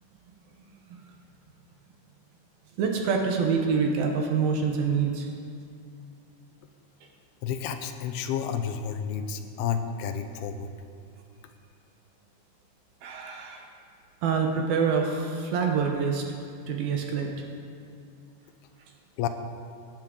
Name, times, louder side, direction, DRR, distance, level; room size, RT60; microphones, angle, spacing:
voice 1, 2.8-5.3 13.0-13.7 14.2-16.3 16.7-17.3, right 5 dB, 70° right, 2 dB, 2.5 m, -26 dB
voice 2, 7.4-10.7 19.2-19.3, left 8 dB, 80° left, 8 dB, 2.4 m, -30 dB
17.5 x 11.0 x 3.8 m, 2.5 s
omnidirectional pair, 4.9 m